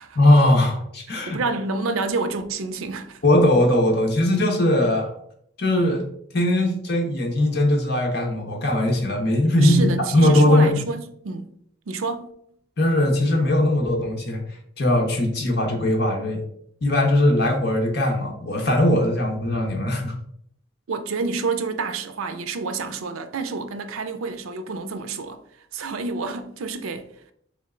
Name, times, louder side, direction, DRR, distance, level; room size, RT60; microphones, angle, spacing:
voice 1, 0.1-1.4 3.2-5.1 5.6-6.1 6.3-10.7 12.8-14.4 14.8-16.4 16.8-20.1, left 1 dB, 50° left, 1.0 m, -20 dB
voice 2, 1.3-3.2 9.6-11.5 11.9-12.3 20.9-25.4 25.7-27.1, right 4 dB, 85° right, 0.5 m, -28 dB
3.7 x 3.2 x 3.7 m
head